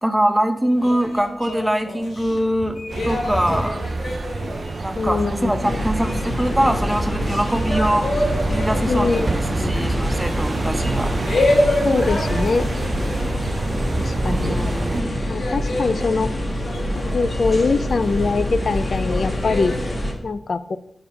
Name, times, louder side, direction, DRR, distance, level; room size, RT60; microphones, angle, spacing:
voice 1, 0.0-2.8 3.1-3.8 4.8-8.1 8.5-11.2 14.3-15.2, right 1 dB, 5° right, 7 dB, 0.6 m, -23 dB
sound 1, 0.8-14.5 14.8-19.9, left 1 dB, 85° left, 1.5 m, -28 dB
sound 2, 2.9-15.0, right 3 dB, 50° right, 0.4 m, -28 dB
voice 2, 5.0-5.7 8.9-9.8 11.8-12.7 14.0-14.6 15.3-16.3 16.9-19.7 20.2-20.8, left 4 dB, 60° left, 13 dB, 0.3 m, -23 dB
sound 3, 5.6-20.1, left 1 dB, 45° left, 1.3 m, -26 dB
5.3 x 4.8 x 5.3 m, 0.79 s
wide cardioid pair, 100°, 0 cm